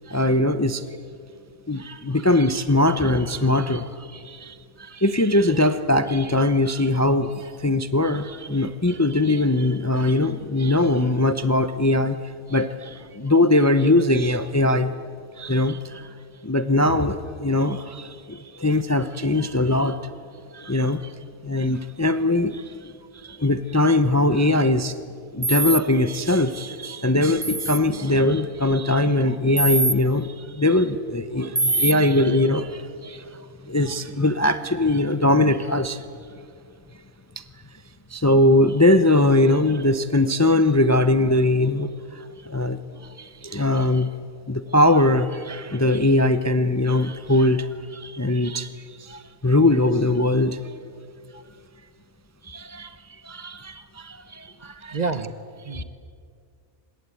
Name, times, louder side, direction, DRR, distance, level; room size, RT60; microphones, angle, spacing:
voice 1, 0.1-0.8 1.7-12.2 12.5-14.9 15.4-16.1 16.4-20.0 20.5-21.1 21.4-23.0 23.2-25.0 25.3-33.3 33.6-36.0 37.4-37.5 38.1-44.1 44.5-48.7 49.0-50.7 52.4-53.0 53.2-55.0 55.7-55.8, left 1 dB, 15° left, 11 dB, 0.7 m, -21 dB
sound 1, 25.4-25.8 27.4-27.8 29.6-30.0 31.6-31.9, right 2 dB, 15° right, 1.0 m, -22 dB
voice 2, 54.9-55.4 55.6-55.8, right 4 dB, 35° right, 11 dB, 1.0 m, -27 dB
26.0 x 22.0 x 8.5 m, 2.2 s
omnidirectional pair, 1.3 m